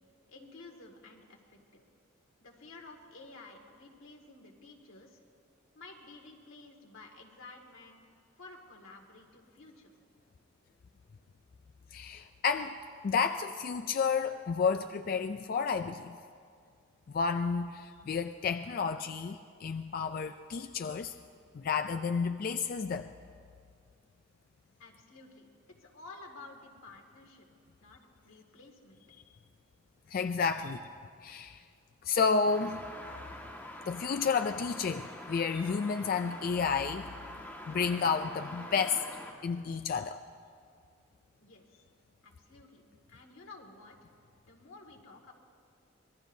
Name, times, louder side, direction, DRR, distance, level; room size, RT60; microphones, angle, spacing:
voice 1, 0.3-1.8 2.4-5.2 5.7-9.9 10.9-11.0 24.8-27.4 27.8-29.0 41.4-41.8 42.2-44.1 44.5-45.3, left 3 dB, 90° left, 1 dB, 2.0 m, -52 dB
voice 2, 11.9-12.8 13.0-16.2 17.1-21.1 21.5-23.1 30.1-30.8 31.2-31.6 32.1-32.8 33.9-37.1 37.7-39.0 39.4-40.2, left 5 dB, 45° left, 8 dB, 0.3 m, -31 dB
sound 1, 32.4-39.3, left 1 dB, 10° left, 1.6 m, -45 dB
25.0 x 20.0 x 2.7 m, 2.2 s
head